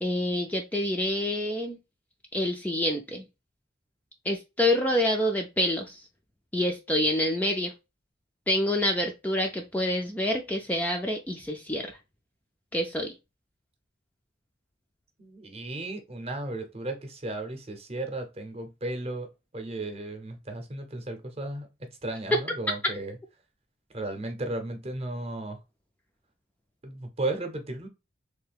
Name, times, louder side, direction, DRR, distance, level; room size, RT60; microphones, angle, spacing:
voice 1, 0.0-1.8 2.3-3.2 4.3-6.0 6.5-7.7 8.5-11.9 12.7-13.1 22.3-22.4, left 1 dB, 10° left, 0.3 m, -27 dB
voice 2, 15.2-23.2 23.9-25.6 26.8-27.9, right 2 dB, 30° right, 0.7 m, -35 dB
3.3 x 2.6 x 3.4 m
head